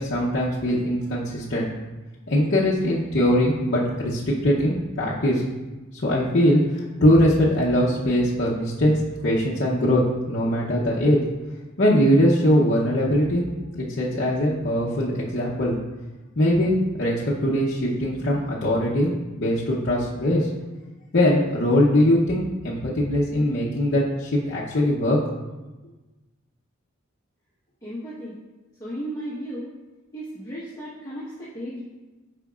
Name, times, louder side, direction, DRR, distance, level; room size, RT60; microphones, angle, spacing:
voice 1, 0.0-1.7 2.3-5.4 6.0-8.9 9.2-11.2 11.8-13.4 13.7-15.7 16.4-17.1 17.4-19.1 19.4-20.5 21.1-25.2, equal, 55° left, -7 dB, 0.8 m, -21 dB
voice 2, 27.8-28.4 28.8-29.7 30.1-31.8, equal, 15° left, -11 dB, 1.2 m, -34 dB
9.2 x 5.1 x 2.4 m, 1.2 s
head